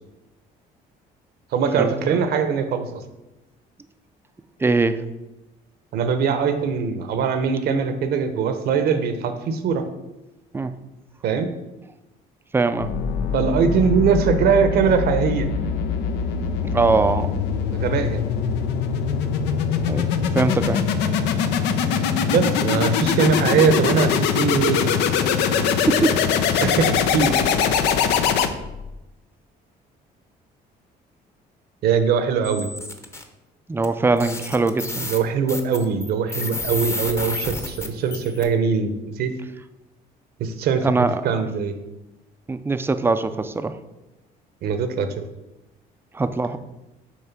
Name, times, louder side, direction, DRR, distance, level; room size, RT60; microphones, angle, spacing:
voice 1, 1.5-3.0 5.9-9.9 11.2-11.5 13.3-15.5 17.7-18.2 22.3-24.9 26.6-27.4 31.8-32.7 35.0-39.3 40.4-40.9 41.2-41.7 44.6-45.1, right 6 dB, 70° right, 9 dB, 0.8 m, -21 dB
voice 2, 4.6-5.0 10.5-10.7 12.5-12.9 16.6-17.4 19.9-20.1 20.3-20.8 25.6-26.1 26.5-26.6 33.7-35.0 40.8-41.4 42.5-43.8 46.1-46.6, right 3 dB, 15° right, 11 dB, 0.4 m, -22 dB
sound 1, 12.8-28.9, left 7 dB, 90° left, 0.6 m, -22 dB
sound 2, 32.4-33.2 33.8-33.9 34.2-38.4, left 2 dB, 15° left, 0.8 m, -31 dB
7.2 x 3.2 x 5.8 m, 1.0 s
cardioid pair, 110°, 17 cm